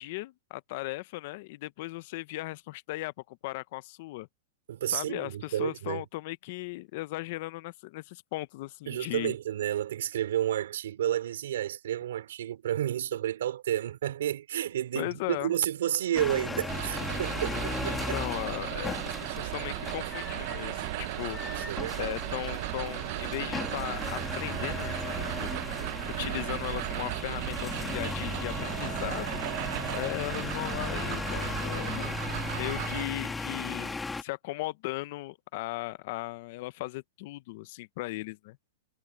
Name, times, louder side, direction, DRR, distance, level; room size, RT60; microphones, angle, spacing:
voice 1, 0.0-4.3 4.9-9.3 14.9-15.5 17.8-21.6 22.0-25.5 26.0-29.4 29.9-38.6, left 19 dB, 50° left, 0.7 m, -37 dB
voice 2, 4.7-6.0 8.9-18.2 21.5-22.2, right 11 dB, 75° right, 4.3 m, -31 dB
sound 1, 16.1-34.2, left 4 dB, 10° left, 1.7 m, -37 dB
sound 2, 16.7-33.0, right 18 dB, 50° right, 0.9 m, -36 dB
sound 3, 18.2-33.6, right 5 dB, 10° right, 3.1 m, -55 dB
supercardioid pair, 150°, 0 cm